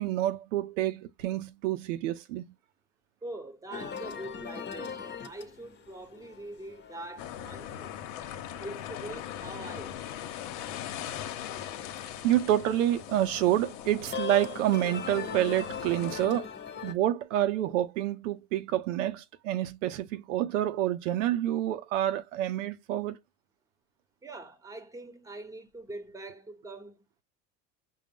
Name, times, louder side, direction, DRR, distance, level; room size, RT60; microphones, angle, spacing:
voice 1, 0.0-2.5 12.2-16.5 16.8-23.2, right 13 dB, 90° right, 0.7 m, -28 dB
voice 2, 3.2-8.0 8.6-10.0 24.2-27.0, right 2 dB, 10° right, 1.0 m, -43 dB
sound 1, 3.7-16.9, left 6 dB, 30° left, 0.9 m, -42 dB
sound 2, 7.2-16.3, left 11 dB, 75° left, 0.9 m, -40 dB
5.2 x 2.1 x 3.5 m
supercardioid pair, 100°, 37 cm